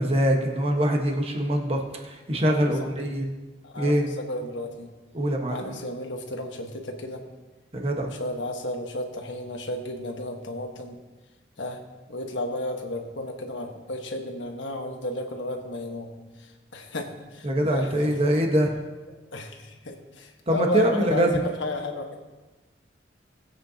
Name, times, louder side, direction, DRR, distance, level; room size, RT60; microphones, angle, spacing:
voice 1, 0.0-3.3 3.8-4.1 5.1-5.7 7.7-8.1 17.4-18.7 20.5-21.4, right 1 dB, 30° right, 1 dB, 1.4 m, -24 dB
voice 2, 2.5-3.1 3.6-4.9 5.5-7.2 8.0-11.0 11.6-11.8 12.1-18.2 19.3-22.2, left 1 dB, 90° left, 3 dB, 1.5 m, -33 dB
20.0 x 8.5 x 2.9 m, 1.2 s
head